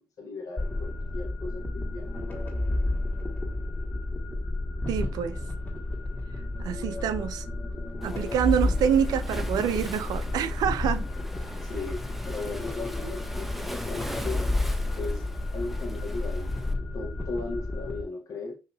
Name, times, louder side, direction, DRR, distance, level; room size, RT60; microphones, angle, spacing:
voice 1, 0.0-2.2 11.7-14.5 15.0-15.2 15.5-16.5 16.9-18.5, left 3 dB, 60° left, 0.9 m, -37 dB
sound 1, 0.6-18.0, left 2 dB, 25° left, 1.5 m, -31 dB
voice 2, 4.9-5.4 6.6-7.5 8.0-11.1, right 9 dB, 75° right, 0.4 m, -26 dB
Waves surf, 8.0-16.7, equal, 5° right, 0.7 m, -41 dB
5.8 x 2.8 x 2.3 m
supercardioid pair, 50°, 7 cm